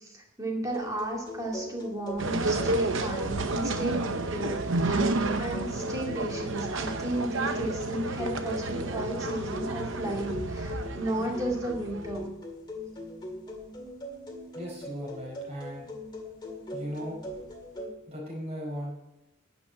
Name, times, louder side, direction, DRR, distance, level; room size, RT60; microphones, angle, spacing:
voice 1, 0.0-5.1 5.4-12.3, right 1 dB, 15° right, -1 dB, 2.4 m, -34 dB
sound 1, 0.7-17.9, left 1 dB, 20° left, 2.0 m, -40 dB
sound 2, 2.2-12.3, right 2 dB, 60° right, 0.9 m, -31 dB
voice 2, 14.5-15.9 16.7-17.2 18.1-18.9, equal, 30° right, -2 dB, 4.7 m, -37 dB
12.0 x 6.1 x 8.8 m, 0.94 s
head